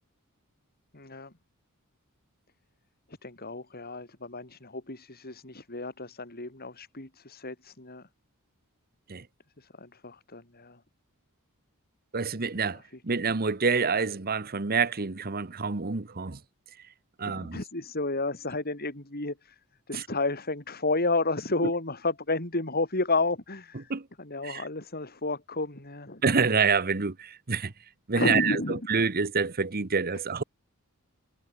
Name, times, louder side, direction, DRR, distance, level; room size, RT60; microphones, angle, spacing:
voice 1, 0.9-1.3 3.1-8.1 9.6-10.8 12.7-13.0 17.2-19.6 19.9-23.9 24.2-26.2 28.1-28.8, left 2 dB, 45° left, 4.9 m, -31 dB
voice 2, 12.1-16.4 17.2-17.6 19.9-20.0 23.9-24.1 24.4-24.6 26.2-27.7 28.1-30.4, right 5 dB, 45° right, 1.1 m, -27 dB
head